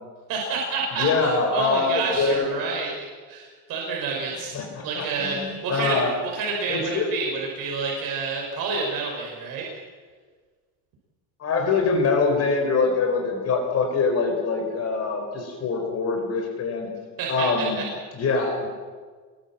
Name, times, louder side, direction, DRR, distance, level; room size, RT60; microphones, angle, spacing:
voice 1, 0.3-2.9 3.3-4.5 4.8-6.0 6.3-9.7 17.2-17.6, right 4 dB, 45° right, -1 dB, 6.0 m, -29 dB
voice 2, 0.9-2.6 4.3-6.1 6.7-7.1 11.4-16.9 17.3-17.8 18.1-18.7, left 4 dB, 30° left, 2 dB, 4.7 m, -24 dB
25.5 x 22.0 x 7.4 m, 1.5 s
cardioid pair, 160°, 49 cm